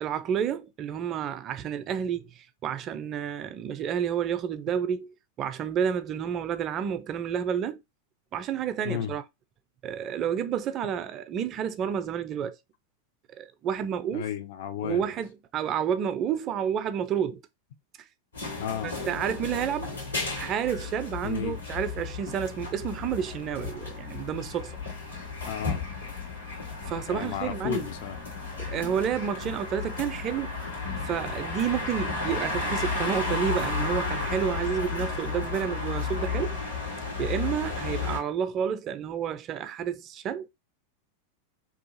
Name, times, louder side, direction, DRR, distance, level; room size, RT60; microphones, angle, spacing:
voice 1, 0.0-7.8 8.3-9.2 9.8-12.6 13.3-14.3 14.8-17.4 18.8-20.0 20.4-24.7 26.9-27.9 28.6-30.6 31.0-36.6 37.2-40.5, right 8 dB, 30° right, 0.3 m, -30 dB
voice 2, 14.1-15.0 18.6-19.0 21.2-21.6 25.5-25.9 27.1-28.2, left 9 dB, 50° left, 0.4 m, -33 dB
sound 1, 18.3-38.2, left 4 dB, 80° left, 1.6 m, -33 dB
2.7 x 2.4 x 2.6 m
figure-of-eight pair, 90°, 0 cm